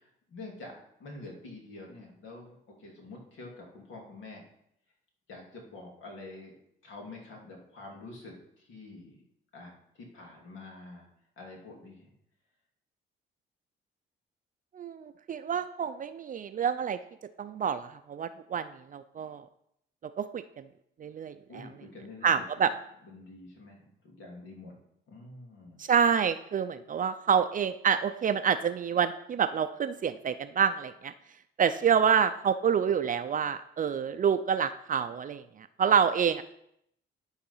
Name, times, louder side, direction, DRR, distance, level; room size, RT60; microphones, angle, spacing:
voice 1, 0.0-4.5 5.3-6.5 6.8-9.2 9.5-11.1 11.4-12.1 21.5-22.4 23.0-24.8 25.1-25.8, left 2 dB, 75° left, -1 dB, 2.7 m, -47 dB
voice 2, 14.7-17.0 17.4-19.4 20.2-20.4 21.0-21.7 22.2-22.7 25.8-31.1 31.6-36.4, right 7 dB, 40° right, 10 dB, 0.4 m, -27 dB
11.5 x 4.0 x 5.5 m, 0.75 s
cardioid pair, 90°, 20 cm